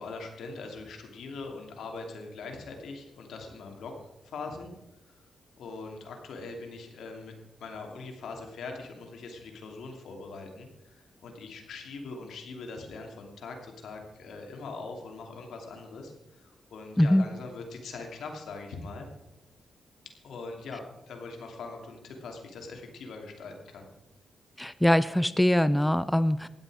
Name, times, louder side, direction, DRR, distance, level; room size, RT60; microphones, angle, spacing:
voice 1, 0.0-3.9 4.2-4.7 5.0-5.1 5.6-7.3 7.6-19.1 20.2-23.9, left 3 dB, 85° left, 3 dB, 2.7 m, -42 dB
voice 2, 24.6-26.5, left 1 dB, 5° left, 15 dB, 0.5 m, -23 dB
15.5 x 10.5 x 4.9 m, 0.98 s
cardioid pair, 100°, 0 cm